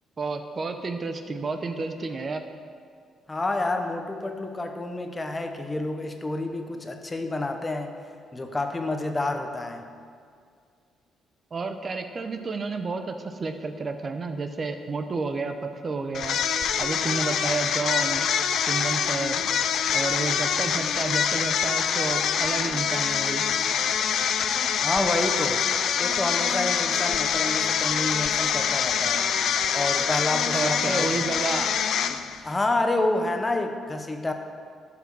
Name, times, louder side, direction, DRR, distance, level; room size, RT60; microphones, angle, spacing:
voice 1, 0.2-2.4 11.5-15.6 15.8-16.4 16.8-18.2 18.7-19.4 19.9-23.4 30.5-31.7, right 3 dB, 40° right, 7 dB, 0.7 m, -30 dB
voice 2, 3.3-8.0 8.3-9.9 24.8-25.6 26.0-29.3 29.7-31.2 32.4-34.3, left 2 dB, 20° left, 5 dB, 0.9 m, -28 dB
sound 1, 16.1-32.5, left 8 dB, 70° left, 0.5 m, -25 dB
11.5 x 6.0 x 6.1 m, 2.2 s
cardioid pair, 90°, 0 cm